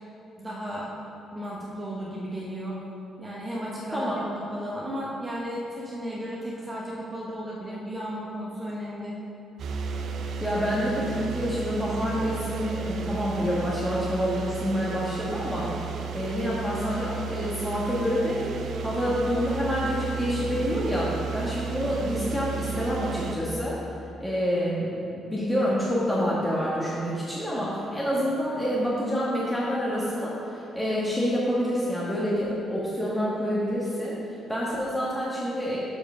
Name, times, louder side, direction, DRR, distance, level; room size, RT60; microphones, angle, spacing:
voice 1, 0.4-0.9 1.3-2.8 3.2-9.1, equal, 20° right, -5 dB, 1.0 m, -34 dB
sound 1, 9.6-23.4, right 7 dB, 70° right, 0.6 m, -34 dB
voice 2, 10.4-18.5 18.8-23.8 24.2-24.9 25.3-35.8, equal, 5° left, -7 dB, 1.3 m, -27 dB
6.9 x 4.9 x 5.9 m, 2.8 s
cardioid pair, 90°, 0 cm